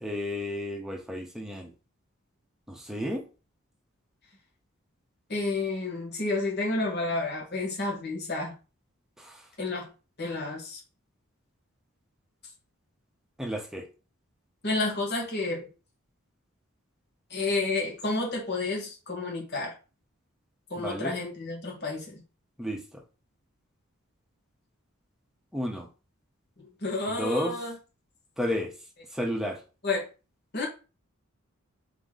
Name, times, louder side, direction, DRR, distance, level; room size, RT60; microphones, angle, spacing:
voice 1, 0.0-1.7 2.7-3.2 9.2-9.3 13.4-13.8 20.8-21.1 22.6-22.8 25.5-25.9 27.2-27.5 28.4-28.7 29.1-29.6, equal, ahead, 0.8 m, -31 dB
voice 2, 5.3-8.5 9.6-9.9 10.2-10.8 14.6-15.7 17.3-19.7 20.7-22.2 26.8-27.8 29.8-30.0 30.5-30.6, left 2 dB, 50° left, 1.6 m, -30 dB
4.0 x 2.9 x 3.7 m
head